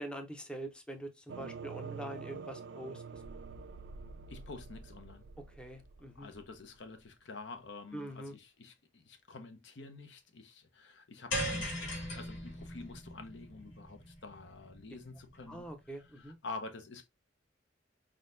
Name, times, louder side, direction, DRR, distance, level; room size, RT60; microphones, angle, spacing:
voice 1, 0.0-3.2 5.5-6.3 7.9-8.3 15.5-16.4, right 1 dB, 5° left, 0.6 m, -44 dB
sound 1, 1.3-7.0, right 5 dB, 65° right, 0.4 m, -47 dB
voice 2, 4.3-5.3 6.1-15.7 16.0-17.1, left 3 dB, 70° left, 0.8 m, -48 dB
sound 2, 11.3-15.7, equal, 85° left, 2.1 m, -39 dB
4.3 x 3.8 x 2.5 m
head